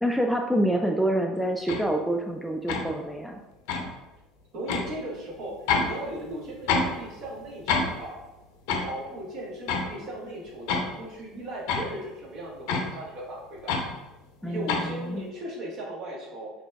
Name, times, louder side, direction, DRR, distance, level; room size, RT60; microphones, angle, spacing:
voice 1, 0.0-3.4 14.4-15.2, right 1 dB, ahead, 2 dB, 0.3 m, -27 dB
sound 1, 1.7-1.8 2.7-2.9 3.7-3.9 4.7-4.9 5.7-5.9 6.2-7.0 7.3-7.4 7.7-7.9 8.7-8.9 9.7-9.9 10.5-10.9 11.7-11.9 12.7-12.9 13.7-13.9 14.7-14.8, left 4 dB, 60° left, 0.6 m, -26 dB
voice 2, 4.5-5.5 5.8-8.2 8.7-13.8 14.4-16.5, right 1 dB, 50° right, -3 dB, 1.2 m, -37 dB
5.4 x 3.3 x 2.3 m, 1.1 s
figure-of-eight pair, 65°, 0 cm